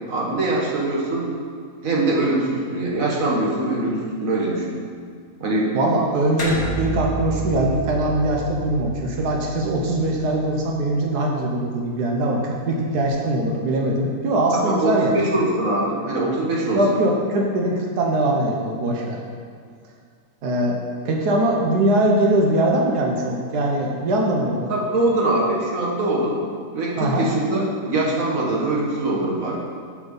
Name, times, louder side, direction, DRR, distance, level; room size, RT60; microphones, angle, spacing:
voice 1, 0.1-1.4 1.8-4.8 5.4-5.8 14.5-16.8 24.7-26.4 26.7-29.6, right 2 dB, 60° right, -3 dB, 1.7 m, -23 dB
voice 2, 5.7-15.2 16.7-19.2 20.4-20.8 21.0-24.7 27.0-27.3, right 1 dB, 85° right, 0 dB, 1.5 m, -21 dB
sound 1, 6.4-11.1, right 4 dB, 50° left, 1.7 m, -31 dB
7.4 x 6.1 x 5.5 m, 2.1 s
omnidirectional pair, 1.6 m